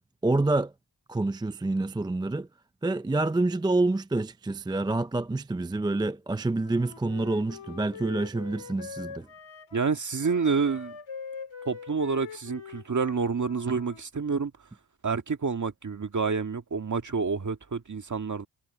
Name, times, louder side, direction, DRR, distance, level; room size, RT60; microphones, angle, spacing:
voice 1, 0.2-0.7 1.1-2.5 2.8-9.3, right 2 dB, 10° right, 0.4 m, -27 dB
Wind instrument woodwind instrument, 6.6-14.0, left 6 dB, 75° left, 3.2 m, -43 dB
voice 2, 9.7-11.0 11.7-14.5 15.0-18.5, right 5 dB, 40° right, 1.8 m, -28 dB
cardioid pair, 80°, 46 cm